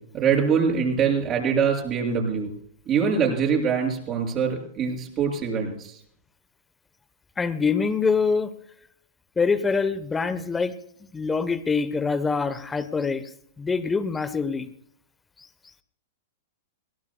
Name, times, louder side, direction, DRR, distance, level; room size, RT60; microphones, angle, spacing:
voice 1, 0.1-2.5 2.9-6.0, right 6 dB, 30° right, 1 dB, 6.6 m, -23 dB
voice 2, 7.4-8.5 9.4-10.7 11.1-13.2 13.6-14.7, left 5 dB, 15° left, 13 dB, 1.0 m, -24 dB
22.0 x 18.0 x 2.3 m, 0.65 s
hypercardioid pair, 105°, 0 cm